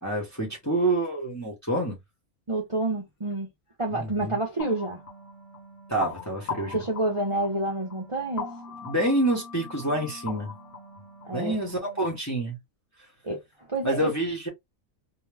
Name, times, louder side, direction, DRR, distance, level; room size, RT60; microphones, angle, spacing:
voice 1, 0.0-2.0 3.9-4.4 5.9-6.8 8.8-10.5 11.3-12.6 13.8-14.5, right 1 dB, 15° left, 0.8 m, -27 dB
voice 2, 2.5-3.5 3.8-5.0 6.7-8.5 11.2-11.6 13.2-13.4 13.7-14.1, right 2 dB, 30° right, 0.6 m, -28 dB
sound 1, 4.6-12.2, left 4 dB, 65° left, 1.2 m, -41 dB
2.8 x 2.2 x 3.3 m
omnidirectional pair, 1.5 m